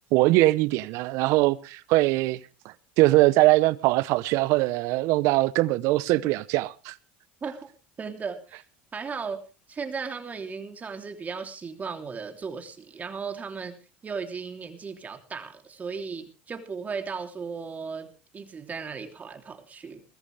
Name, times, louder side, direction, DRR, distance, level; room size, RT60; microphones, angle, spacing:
voice 1, 0.1-2.4 2.6-6.9, right 19 dB, 65° right, 0.8 m, -22 dB
voice 2, 8.0-8.6 8.9-9.4 9.7-13.8 14.0-20.0, right 5 dB, 30° right, 3.1 m, -36 dB
21.0 x 14.0 x 3.4 m
hypercardioid pair, 85°, 5 cm